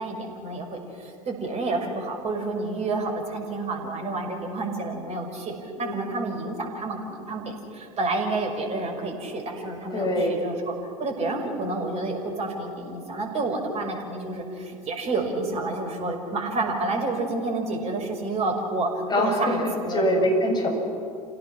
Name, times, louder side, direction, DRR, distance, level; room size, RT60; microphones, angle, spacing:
voice 1, 0.0-18.9 19.2-19.6 19.8-20.2, right 2 dB, 35° right, 2 dB, 5.9 m, -29 dB
voice 2, 5.8-6.1 9.9-10.4 19.1-20.7, equal, 20° left, 0 dB, 7.4 m, -24 dB
28.5 x 17.5 x 6.1 m, 2.6 s
figure-of-eight pair, 80°, 19 cm